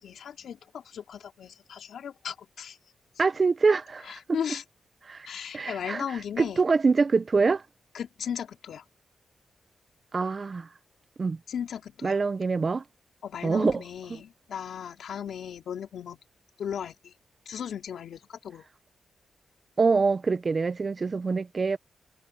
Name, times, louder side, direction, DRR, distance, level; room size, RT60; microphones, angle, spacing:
voice 1, 0.0-2.8 4.0-4.6 5.2-6.7 7.9-8.8 11.5-12.2 13.2-16.2 16.6-17.1 17.5-18.7, left 8 dB, 80° left, 4.1 m, -36 dB
voice 2, 3.2-4.2 5.1-5.3 5.5-6.0 6.4-7.6 10.1-10.7 11.2-11.4 12.0-12.8 13.4-13.8 19.8-21.8, right 4 dB, 40° right, 0.6 m, -24 dB
cardioid pair, 85°, 0 cm